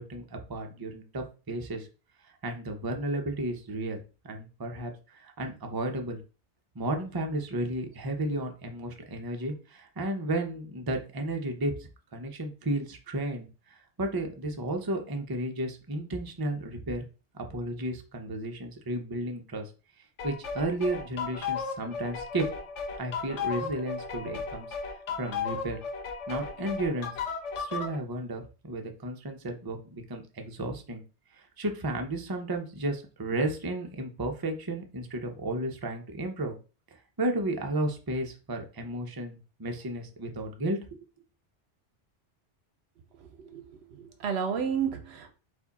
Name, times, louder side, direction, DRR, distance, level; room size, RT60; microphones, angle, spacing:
voice 1, 0.0-1.9 2.2-4.0 4.2-6.2 6.7-17.1 17.3-19.7 20.2-22.5 23.0-24.8 25.2-25.8 26.3-27.1 27.6-31.0 31.3-36.6 37.2-40.8, right 1 dB, 25° right, 0.6 m, -33 dB
sound 1, 20.2-28.0, left 5 dB, 90° left, 1.1 m, -35 dB
voice 2, 44.0-45.3, right 7 dB, 70° right, 0.9 m, -31 dB
4.7 x 2.6 x 4.1 m
omnidirectional pair, 1.2 m